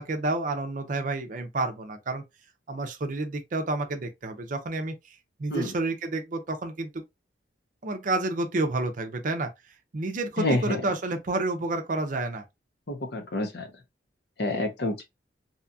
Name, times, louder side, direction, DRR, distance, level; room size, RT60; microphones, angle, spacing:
voice 1, 0.0-2.2 2.7-4.9 5.4-7.0 7.8-9.5 9.9-12.4, right 2 dB, 45° right, 0.5 m, -29 dB
voice 2, 10.4-10.8 12.9-13.7 14.4-15.0, left 1 dB, 60° left, 0.7 m, -28 dB
2.7 x 2.3 x 2.6 m
head